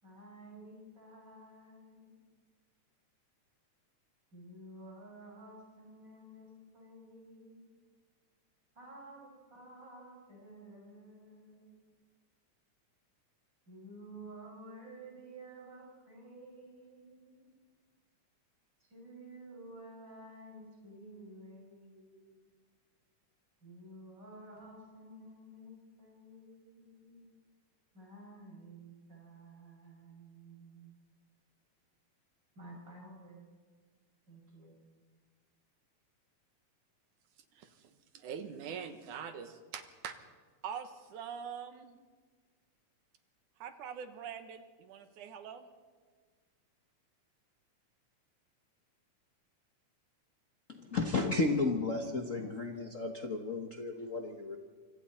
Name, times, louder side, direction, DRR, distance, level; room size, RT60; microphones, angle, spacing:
voice 1, 0.0-2.1 4.3-7.7 8.7-11.9 13.7-17.5 18.8-22.5 23.6-27.2 27.9-30.9 32.5-33.4 34.3-34.7, right 1 dB, 35° right, -2 dB, 6.9 m, -52 dB
voice 2, 37.5-40.2 40.6-42.0 43.6-45.7, right 7 dB, 85° right, 8 dB, 2.8 m, -44 dB
voice 3, 50.7-54.6, left 3 dB, 70° left, 3 dB, 0.7 m, -33 dB
27.0 x 25.5 x 4.3 m, 1.5 s
omnidirectional pair, 3.5 m